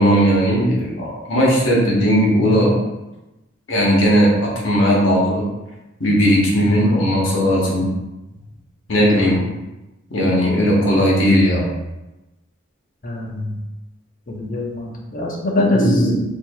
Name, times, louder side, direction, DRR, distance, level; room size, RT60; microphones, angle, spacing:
voice 1, 0.0-2.8 3.7-5.4 6.0-7.9 8.9-9.4 10.1-11.7 15.6-16.2, equal, 65° left, -4 dB, 1.0 m, -17 dB
voice 2, 6.8-7.1 9.0-9.4 13.0-13.5 14.3-16.1, left 1 dB, 40° left, -1 dB, 0.6 m, -24 dB
4.4 x 2.7 x 2.3 m, 1.0 s
head